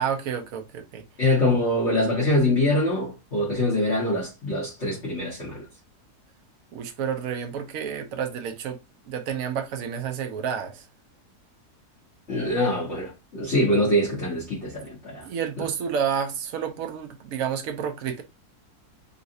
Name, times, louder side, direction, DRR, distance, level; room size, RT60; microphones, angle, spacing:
voice 1, 0.0-1.0 6.7-8.8 9.1-10.9 15.2-18.2, right 7 dB, 65° right, 1.0 m, -30 dB
voice 2, 1.2-5.7 12.3-15.2, left 1 dB, 45° left, 1.5 m, -24 dB
3.9 x 2.4 x 2.6 m
omnidirectional pair, 1.7 m